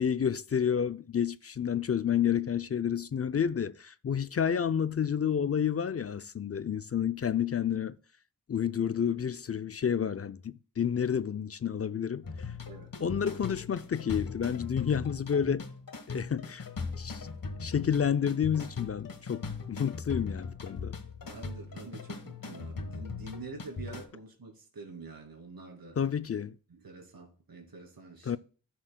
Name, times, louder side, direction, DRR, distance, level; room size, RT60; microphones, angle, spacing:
voice 1, 0.0-8.0 8.5-12.3 13.0-15.7 16.1-16.7 17.0-17.3 17.6-21.0 26.0-26.6 28.3-28.4, left 8 dB, 40° left, 0.5 m, -30 dB
sound 1, 12.2-24.0, left 4 dB, 65° left, 1.4 m, -39 dB
voice 2, 21.2-26.0 26.7-28.4, right 3 dB, 75° right, 2.8 m, -46 dB
13.0 x 6.3 x 2.3 m
cardioid pair, 60°, 36 cm